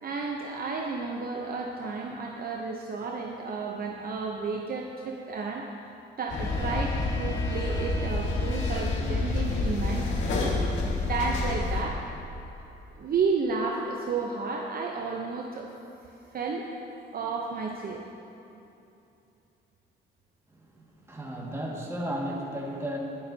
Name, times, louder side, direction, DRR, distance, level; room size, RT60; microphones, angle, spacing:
voice 1, 0.0-5.6 6.2-12.0 13.0-15.7 16.3-16.7 17.1-18.0, right 4 dB, 50° right, 0 dB, 0.8 m, -32 dB
sound 1, 6.3-11.8, left 3 dB, 75° left, 1.8 m, -28 dB
voice 2, 20.7-23.0, equal, 15° right, -3 dB, 1.9 m, -34 dB
19.5 x 6.8 x 2.8 m, 2.8 s
cardioid pair, 90°, 20 cm